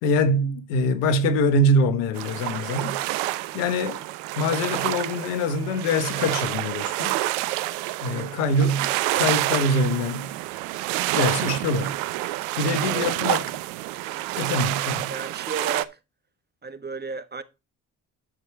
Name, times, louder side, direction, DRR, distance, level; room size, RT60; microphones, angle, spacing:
voice 1, 0.0-3.0 3.5-4.0 4.4-7.2 8.0-10.3 11.1-11.9 12.6-13.4 14.4-15.1, left 1 dB, 85° left, 1.2 m, -24 dB
sound 1, 2.1-15.8, right 17 dB, 85° right, 0.6 m, -28 dB
voice 2, 12.6-13.1 15.1-16.0 16.6-17.4, right 5 dB, 25° right, 1.3 m, -34 dB
13.0 x 4.9 x 3.3 m
hypercardioid pair, 50°, 37 cm